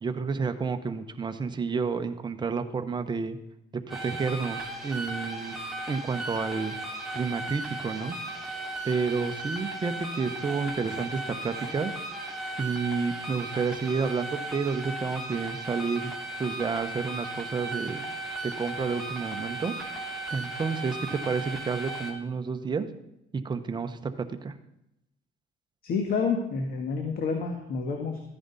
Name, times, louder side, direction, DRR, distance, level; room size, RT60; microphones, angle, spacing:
voice 1, 0.0-3.4 3.9-5.5 5.9-8.2 8.5-8.6 8.8-11.9 12.6-16.1 16.4-18.0 18.4-19.7 20.3-22.9 23.4-24.0 24.3-24.5, right 5 dB, 25° right, 7 dB, 1.0 m, -30 dB
sound 1, 3.9-22.1, right 2 dB, ahead, 2.6 m, -36 dB
voice 2, 25.8-28.2, left 5 dB, 65° left, 4 dB, 1.7 m, -29 dB
14.0 x 10.0 x 4.1 m, 0.84 s
cardioid pair, 110°, 17 cm